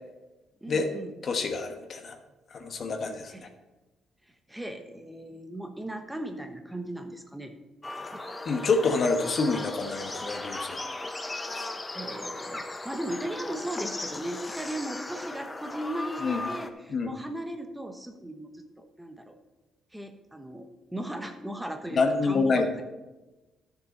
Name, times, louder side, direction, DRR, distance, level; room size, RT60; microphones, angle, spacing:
voice 1, 0.6-1.1 3.3-3.5 4.5-7.5 8.1-8.2 11.9-19.4 19.9-22.6, right 1 dB, 5° right, 6 dB, 0.9 m, -37 dB
voice 2, 1.2-2.2 2.5-3.3 8.4-10.8 16.2-16.4 16.9-17.1 21.9-22.8, left 3 dB, 50° left, 5 dB, 1.2 m, -27 dB
sound 1, 7.8-16.7, left 2 dB, 20° left, 0.8 m, -37 dB
12.0 x 6.9 x 4.2 m, 1.1 s
cardioid pair, 90°, 0 cm